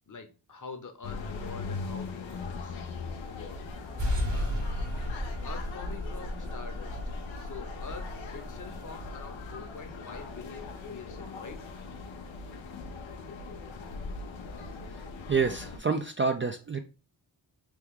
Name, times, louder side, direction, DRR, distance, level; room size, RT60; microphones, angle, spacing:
voice 1, 0.1-2.8 3.2-3.9 4.3-4.6 5.4-7.0 7.3-11.6, left 4 dB, 40° left, 6 dB, 0.8 m, -45 dB
sound 1, 1.0-15.8, left 3 dB, 90° left, 0.6 m, -39 dB
sound 2, 4.0-11.1, left 1 dB, 65° right, 1.4 m, -36 dB
voice 2, 15.3-16.8, right 5 dB, 30° right, 6 dB, 0.3 m, -28 dB
3.0 x 2.2 x 3.6 m, 0.32 s
cardioid pair, 45°, 46 cm